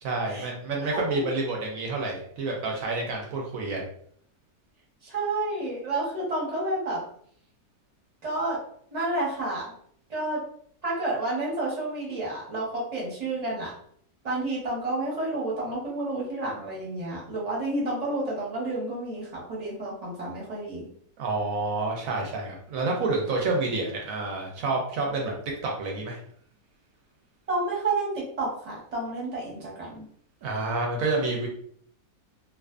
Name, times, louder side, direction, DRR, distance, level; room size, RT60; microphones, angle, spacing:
voice 1, 0.0-3.9 21.2-25.3 25.6-26.2 30.4-31.5, right 3 dB, 70° right, 0 dB, 0.9 m, -29 dB
voice 2, 0.8-1.3 3.0-3.1 5.0-7.0 8.2-8.6 8.9-9.7 10.1-10.4 10.8-13.7 14.2-20.9 27.5-30.0, right 2 dB, 30° right, -5 dB, 0.8 m, -30 dB
2.4 x 2.4 x 2.3 m, 0.63 s
omnidirectional pair, 1.6 m